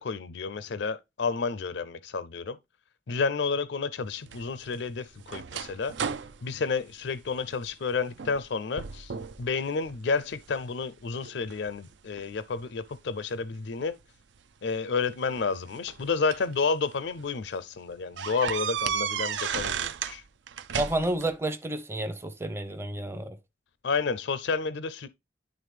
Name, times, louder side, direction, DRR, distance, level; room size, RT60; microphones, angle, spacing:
voice 1, 0.0-2.6 3.1-5.9 6.4-14.0 14.6-20.2 23.8-25.1, left 4 dB, 70° left, 0.5 m, -30 dB
sound 1, 4.3-7.7 8.1-8.5 8.8-9.4 9.9-10.6 11.2-12.6 13.8-13.9 15.1-16.5 17.1-17.2 17.5-17.6 18.2-20.2 20.5-21.3, right 7 dB, 75° right, 0.5 m, -34 dB
voice 2, 20.7-23.4, right 1 dB, 15° right, 0.6 m, -30 dB
11.0 x 3.7 x 3.2 m
head